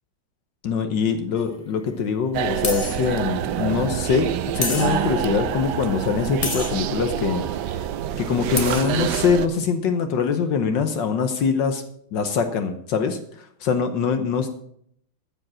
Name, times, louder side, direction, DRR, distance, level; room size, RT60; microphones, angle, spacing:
voice 1, 0.6-7.4 8.2-11.8 12.1-13.2 13.6-14.5, left 6 dB, 70° left, 7 dB, 1.6 m, -23 dB
sound 1, 1.4-1.5 2.6-3.1 4.6-5.2 6.4-6.8 8.3-8.4 8.6-9.0, left 3 dB, 30° left, 0.7 m, -29 dB
sound 2, 2.3-9.5, right 10 dB, 70° right, 1.2 m, -27 dB
14.5 x 5.2 x 7.5 m, 0.69 s
omnidirectional pair, 2.1 m